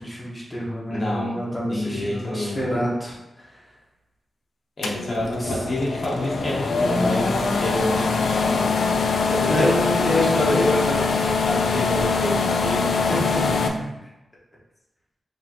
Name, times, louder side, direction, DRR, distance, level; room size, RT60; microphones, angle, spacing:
voice 1, 0.0-3.2 5.2-5.6 9.5-9.7 10.0-11.0 13.1-13.9, equal, 5° left, -6 dB, 1.1 m, -27 dB
voice 2, 0.9-2.7 4.8-8.7 9.3-13.0, left 1 dB, 45° left, -4 dB, 0.8 m, -27 dB
sound 1, 4.8-13.7, left 4 dB, 70° left, 0.4 m, -23 dB
5.1 x 2.8 x 2.9 m, 0.95 s
wide cardioid pair, 145°, 0 cm